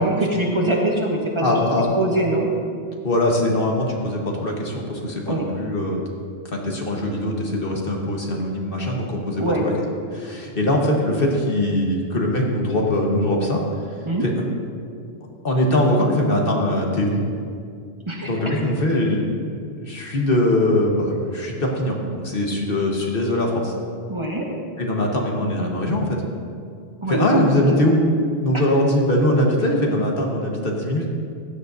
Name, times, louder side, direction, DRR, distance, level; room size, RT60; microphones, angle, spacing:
voice 1, 0.0-1.6 2.0-2.5 5.3-5.5 9.4-9.7 14.0-14.3 18.1-18.5 24.1-24.5 27.0-27.7 28.5-28.6, right 1 dB, 30° right, -1 dB, 1.1 m, -23 dB
voice 2, 1.4-1.9 3.0-6.0 6.4-9.7 10.1-13.6 14.2-14.3 15.4-17.2 18.2-23.7 24.8-26.2 27.1-28.0 28.4-31.1, left 1 dB, 60° left, 0 dB, 1.4 m, -22 dB
15.0 x 9.8 x 2.6 m, 2.2 s
omnidirectional pair, 1.1 m